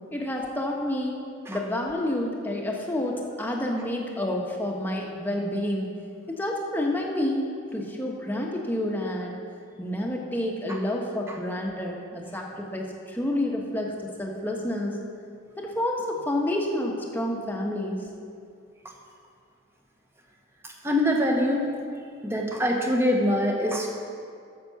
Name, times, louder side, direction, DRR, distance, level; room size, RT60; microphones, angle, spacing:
voice 1, 0.1-1.2 1.5-5.9 6.3-9.4 9.8-15.0 15.6-18.0, left 1 dB, 10° left, -1 dB, 1.1 m, -29 dB
voice 2, 20.8-21.6 22.2-23.9, left 1 dB, 10° right, 0 dB, 1.0 m, -24 dB
9.4 x 6.8 x 7.0 m, 2.3 s
head